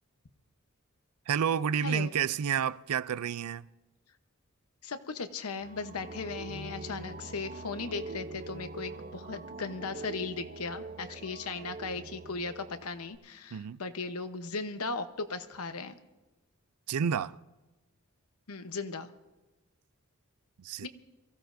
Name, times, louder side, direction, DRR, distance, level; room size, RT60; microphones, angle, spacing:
voice 1, 1.3-3.7 13.5-13.8 16.9-17.4 20.6-20.9, right 7 dB, 90° right, 0.4 m, -30 dB
voice 2, 4.8-16.0 18.5-19.1 20.8-20.9, left 4 dB, 85° left, 1.0 m, -37 dB
sound 1, 5.6-13.2, right 3 dB, 35° right, 0.6 m, -44 dB
24.0 x 15.5 x 2.6 m
head